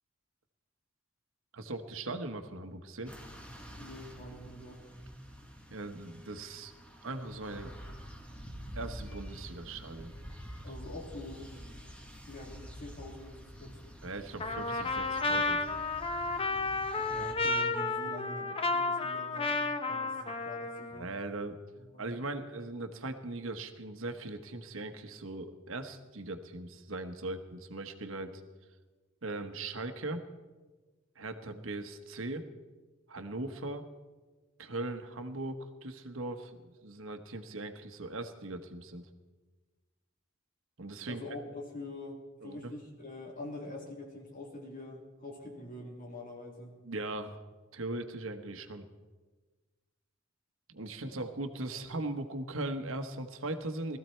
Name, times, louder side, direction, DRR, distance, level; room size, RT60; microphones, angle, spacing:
voice 1, 1.5-3.1 5.7-6.7 7.0-7.7 8.7-10.1 14.0-15.7 20.9-21.6 22.0-28.4 29.2-30.2 31.2-32.4 33.1-33.8 34.6-39.1 40.8-41.2 42.4-42.7 46.8-47.4 47.7-48.8 50.7-54.0, right 2 dB, 85° right, 7 dB, 1.2 m, -39 dB
sound 1, 3.1-17.3, equal, 5° left, 1.9 m, -48 dB
voice 2, 3.7-4.8 10.6-11.6 12.3-13.9 17.1-19.6 19.9-21.1 21.8-22.1 41.1-46.8 51.0-51.1 51.7-51.8, left 1 dB, 45° left, -1 dB, 3.4 m, -45 dB
Trumpet, 14.4-21.0, left 3 dB, 30° left, 0.9 m, -32 dB
20.0 x 14.0 x 4.5 m, 1.3 s
head